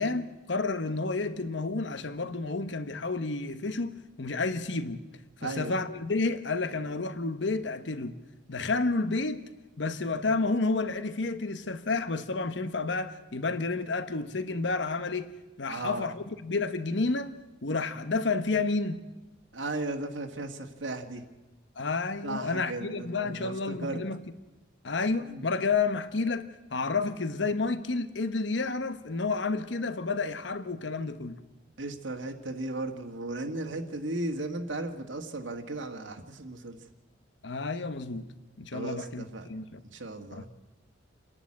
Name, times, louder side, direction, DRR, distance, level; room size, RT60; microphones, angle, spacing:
voice 1, 0.0-5.0 5.4-8.2 8.5-9.5 9.8-19.0 21.8-24.2 24.8-31.4 37.4-38.3 38.6-39.8 40.3-40.5, left 3 dB, 70° left, 1.0 m, -30 dB
voice 2, 5.4-5.7 15.7-16.1 19.5-21.2 22.2-24.0 25.2-25.5 31.8-36.8 38.7-39.5 39.9-40.5, right 2 dB, 80° right, 1.7 m, -36 dB
28.5 x 11.0 x 8.7 m
head